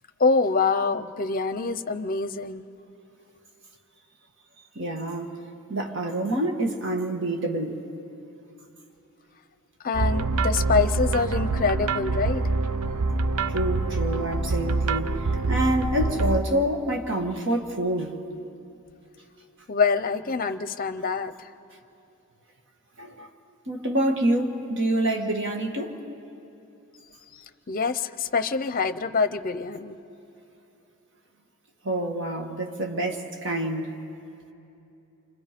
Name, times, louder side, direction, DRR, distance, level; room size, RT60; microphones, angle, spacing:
voice 1, 0.2-2.6 9.8-12.5 19.7-21.5 27.7-30.0, left 4 dB, 40° left, 0.7 m, -25 dB
voice 2, 4.8-5.4 5.7-7.8 13.5-18.2 23.0-23.3 23.7-26.0 31.8-33.9, right 1 dB, 55° right, 1.9 m, -27 dB
sound 1, 9.9-16.4, right 3 dB, 85° right, 0.7 m, -25 dB
29.5 x 25.5 x 5.2 m
head